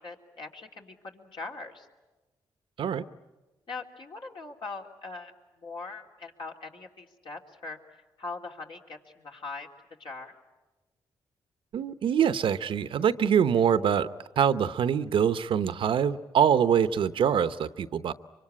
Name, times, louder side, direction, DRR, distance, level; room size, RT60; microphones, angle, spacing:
voice 1, 0.0-1.9 3.7-7.8 8.2-9.7 10.0-10.3, left 3 dB, 65° left, 1 dB, 3.1 m, -41 dB
voice 2, 11.7-14.1 14.4-18.1, right 8 dB, 70° right, 13 dB, 0.8 m, -24 dB
24.5 x 24.0 x 9.9 m, 1.2 s
supercardioid pair, 55°, 9 cm